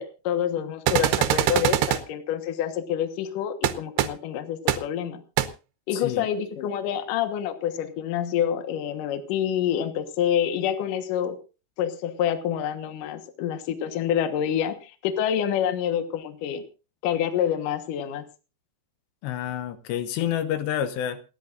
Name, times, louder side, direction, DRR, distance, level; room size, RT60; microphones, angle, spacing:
voice 1, 0.0-5.2 5.9-11.4 11.8-16.6 17.0-18.2, left 9 dB, 60° left, 2.5 m, -27 dB
sound 1, 0.9-2.0 3.6-3.7 4.0-4.1 4.7-4.8 5.4-5.5, right 12 dB, 75° right, 2.7 m, -22 dB
voice 2, 5.9-6.3 19.2-21.2, left 10 dB, 80° left, 3.2 m, -28 dB
28.0 x 10.5 x 2.6 m
omnidirectional pair, 5.0 m